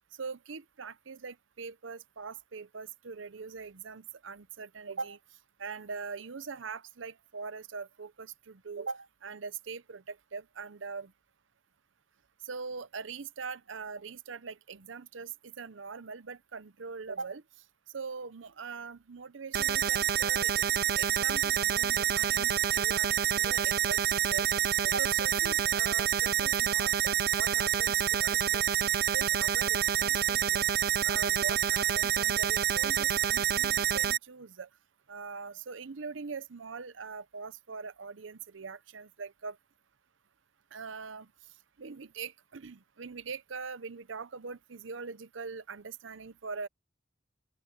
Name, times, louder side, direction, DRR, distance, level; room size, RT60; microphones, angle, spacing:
voice 1, 0.2-5.2 5.6-11.1 12.4-17.4 17.9-20.7 21.0-30.7 31.0-34.7 35.1-39.6 40.7-41.3 41.8-46.7, right 5 dB, 80° right, 0.7 m, -42 dB
sound 1, 19.5-34.2, right 10 dB, 50° right, 0.4 m, -27 dB
open air
head